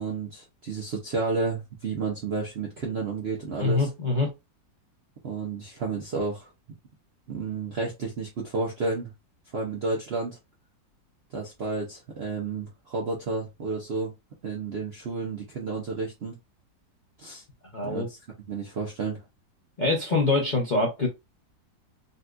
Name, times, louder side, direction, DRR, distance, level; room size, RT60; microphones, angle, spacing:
voice 1, 0.0-3.9 5.2-6.5 7.3-9.1 9.5-10.4 11.3-14.1 14.4-16.4 17.2-17.4 17.8-18.2 18.5-19.2, right 4 dB, 60° right, 0.6 m, -31 dB
voice 2, 3.6-4.3 17.7-18.1 19.8-21.1, left 3 dB, 45° left, 0.6 m, -24 dB
4.0 x 2.5 x 2.2 m
omnidirectional pair, 2.0 m